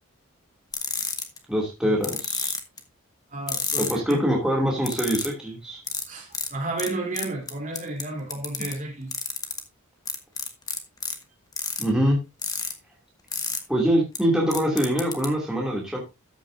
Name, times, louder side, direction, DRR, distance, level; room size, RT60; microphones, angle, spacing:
sound 1, 0.7-1.4 2.0-2.8 3.5-4.1 4.8-5.3 5.9-6.0 6.3-6.5 6.8-6.9 7.1-8.0 8.3-8.7 9.1-9.6 10.1-11.1 11.5-11.8 12.4-12.7 13.3-13.6 14.2-14.3 14.5-15.3, left 5 dB, 15° left, 1.3 m, -29 dB
voice 1, 1.5-2.5 3.8-5.8 11.8-12.2 13.7-16.0, equal, 5° right, 2.7 m, -24 dB
voice 2, 3.3-4.2 6.1-9.1, right 2 dB, 35° right, 3.4 m, -32 dB
13.5 x 8.9 x 2.7 m
head